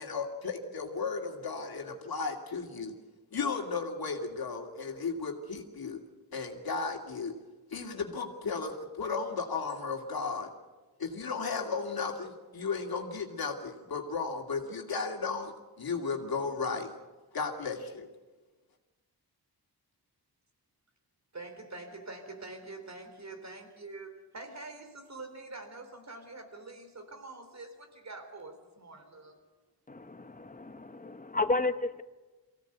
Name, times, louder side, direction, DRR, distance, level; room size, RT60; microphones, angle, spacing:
voice 1, 0.0-2.9 3.3-6.0 6.3-7.3 7.7-10.5 11.0-16.9 17.3-18.1, left 4 dB, 65° left, 2 dB, 2.5 m, -35 dB
voice 2, 21.3-29.3, right 3 dB, 45° right, 5 dB, 3.8 m, -45 dB
voice 3, 29.9-32.0, left 2 dB, 20° left, 9 dB, 1.1 m, -32 dB
24.5 x 16.5 x 8.1 m, 1.2 s
wide cardioid pair, 130°, 39 cm